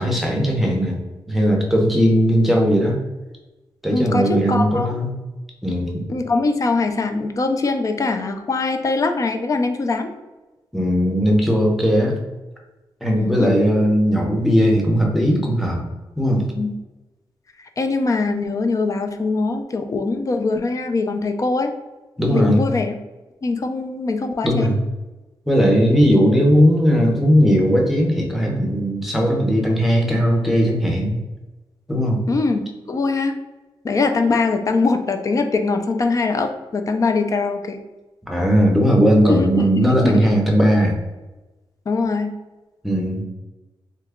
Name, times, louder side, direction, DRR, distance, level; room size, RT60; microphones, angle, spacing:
voice 1, 0.0-3.0 3.8-5.1 5.6-6.0 10.7-12.1 13.0-15.8 16.2-16.4 22.2-22.7 24.4-24.8 25.5-31.2 31.9-32.2 38.3-41.0 42.8-43.2, equal, ahead, 0 dB, 0.7 m, -18 dB
voice 2, 3.9-4.9 6.1-10.1 13.1-13.5 16.6-16.7 17.8-21.7 22.3-22.9 23.4-24.7 32.3-33.3 33.8-37.8 39.3-40.3 41.9-42.4, left 3 dB, 40° left, 6 dB, 0.3 m, -22 dB
2.8 x 2.3 x 3.5 m, 1.1 s
wide cardioid pair, 110°, 9 cm